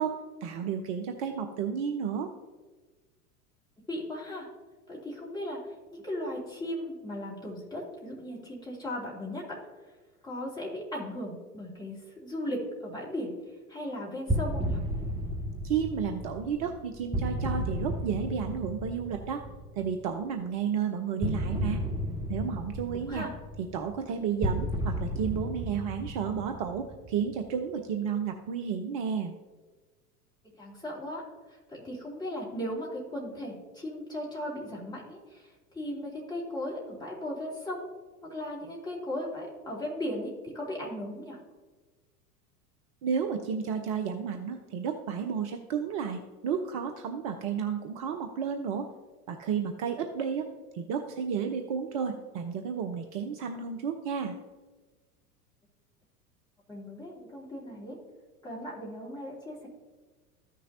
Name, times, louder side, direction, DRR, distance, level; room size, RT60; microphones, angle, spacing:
voice 1, 0.0-2.3 15.6-19.4 19.8-21.8 22.3-23.2 23.7-29.3 43.0-48.9 49.3-50.5 50.7-54.4, right 7 dB, 25° right, 5 dB, 0.4 m, -32 dB
voice 2, 3.9-4.5 4.9-5.6 5.9-9.6 10.2-13.3 13.7-14.8 23.1-23.3 30.5-31.2 31.5-37.8 38.2-41.4 56.7-58.0 58.4-59.7, left 1 dB, 10° left, -4 dB, 2.6 m, -37 dB
sound 1, 14.3-20.0 21.2-27.5, equal, 10° right, 1.1 m, -33 dB
14.0 x 6.1 x 2.7 m, 1.3 s
figure-of-eight pair, 85°, 47 cm